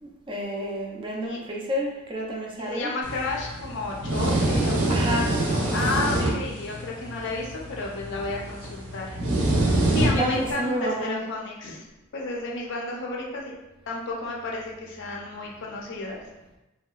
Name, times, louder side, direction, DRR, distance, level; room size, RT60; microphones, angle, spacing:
voice 1, 0.0-2.9 4.9-5.3 5.6-5.8 6.2-6.3 10.2-11.2, equal, 25° right, -1 dB, 0.3 m, -30 dB
voice 2, 2.6-4.8 5.0-9.2 9.9-11.8 12.1-13.5 13.9-16.3, left 2 dB, 55° left, -1 dB, 0.5 m, -32 dB
sound 1, 3.0-10.5, right 1 dB, 70° right, 0.6 m, -26 dB
2.7 x 2.2 x 2.2 m, 0.97 s
head